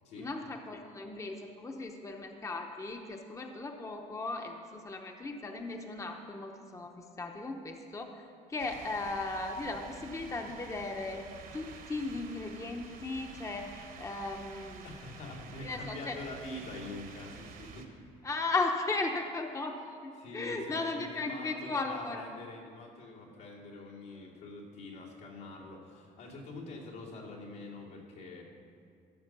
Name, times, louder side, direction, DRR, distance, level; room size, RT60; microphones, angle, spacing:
voice 1, 0.2-11.3 11.5-14.8 15.6-16.2 18.2-22.2, left 3 dB, 20° left, 3 dB, 0.8 m, -36 dB
sound 1, 8.6-17.9, right 6 dB, 55° right, 1.2 m, -50 dB
voice 2, 14.8-17.9 20.2-28.4, left 2 dB, 85° left, -5 dB, 2.7 m, -45 dB
14.0 x 6.2 x 6.1 m, 2.3 s
cardioid pair, 110°, 17 cm